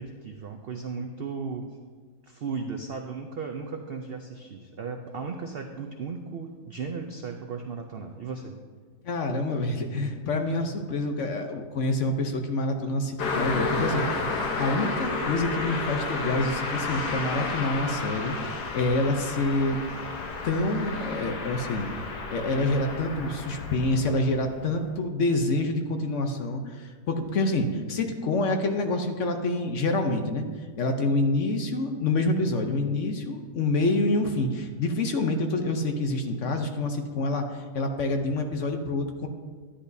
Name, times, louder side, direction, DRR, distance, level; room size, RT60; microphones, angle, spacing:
voice 1, 0.0-1.7 2.2-8.6 14.2-14.3 14.7-14.8, right 5 dB, 85° right, 4 dB, 0.5 m, -36 dB
voice 2, 9.0-14.3 14.5-19.8 20.4-30.4 30.8-39.3, left 2 dB, 60° left, 5 dB, 0.9 m, -27 dB
Car passing by, 13.2-24.6, left 3 dB, 80° left, 1.6 m, -31 dB
11.5 x 10.0 x 2.7 m, 1.5 s
omnidirectional pair, 1.7 m